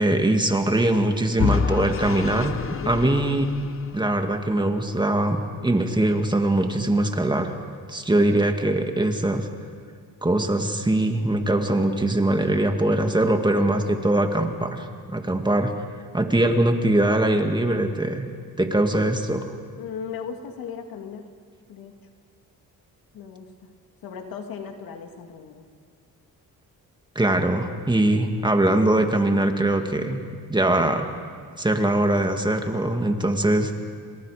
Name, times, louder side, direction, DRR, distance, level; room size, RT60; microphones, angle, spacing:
voice 1, 0.0-3.5 3.9-7.5 7.9-9.5 10.2-15.7 16.1-18.3 18.6-19.5 27.2-30.2 30.5-31.1 31.6-33.7, right 1 dB, 15° right, 5 dB, 2.1 m, -22 dB
Vehicle / Engine, 1.4-4.4, left 7 dB, 40° left, 1.0 m, -28 dB
voice 2, 2.8-3.2 19.8-21.3 21.7-22.0 23.1-23.5 24.0-25.7, left 6 dB, 80° left, 4 dB, 2.5 m, -36 dB
30.0 x 25.5 x 5.1 m, 2.2 s
cardioid pair, 105°, 34 cm